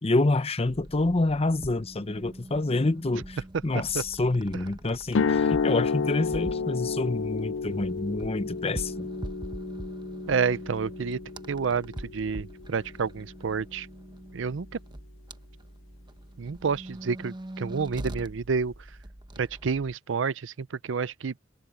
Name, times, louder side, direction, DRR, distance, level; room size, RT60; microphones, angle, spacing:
voice 1, 0.0-3.4 3.6-9.1, left 2 dB, 30° left, 0.8 m, -27 dB
sound 1, 0.7-20.0, right 1 dB, 25° right, 1.1 m, -43 dB
sound 2, 5.1-13.1, left 5 dB, 85° left, 0.4 m, -31 dB
voice 2, 10.3-11.2 11.5-13.9 14.3-14.8 16.4-18.9 19.4-21.3, right 5 dB, 90° right, 0.5 m, -29 dB
head